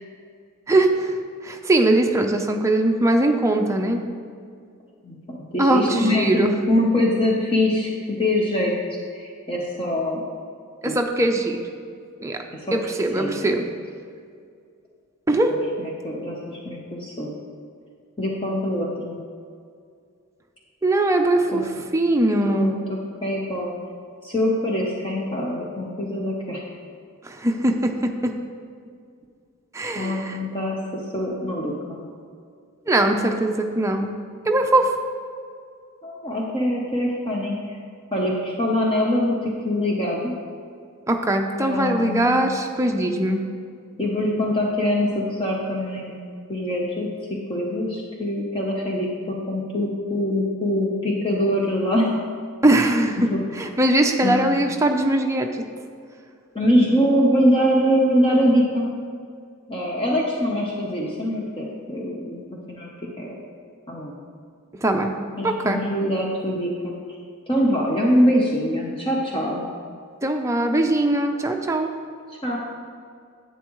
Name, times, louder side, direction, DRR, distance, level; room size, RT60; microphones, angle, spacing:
voice 1, 0.7-1.1 1.4-4.0 5.6-6.5 10.8-11.6 12.2-12.4 12.7-13.6 15.3-15.6 20.8-22.7 27.2-28.3 29.7-30.4 32.9-34.1 34.5-34.9 41.1-43.4 52.6-55.5 64.8-65.2 65.4-65.8 70.2-71.9, right 1 dB, 15° right, 3 dB, 0.5 m, -21 dB
voice 2, 5.0-6.4 6.7-8.7 9.1-10.2 10.9-11.0 12.7-12.8 13.2-13.3 15.3-15.4 15.8-17.3 18.2-19.2 21.5-21.6 22.5-23.7 24.2-26.6 29.9-30.8 31.1-32.0 36.0-37.8 38.1-40.3 41.6-42.4 44.0-46.1 46.5-47.1 47.5-52.1 53.3-53.4 54.2-54.5 56.5-58.9 59.7-62.9 63.2-63.4 63.9-64.1 65.4-66.9 67.5-69.7 72.3-72.6, equal, 25° left, -3 dB, 0.8 m, -23 dB
11.0 x 8.3 x 3.1 m, 2.3 s
head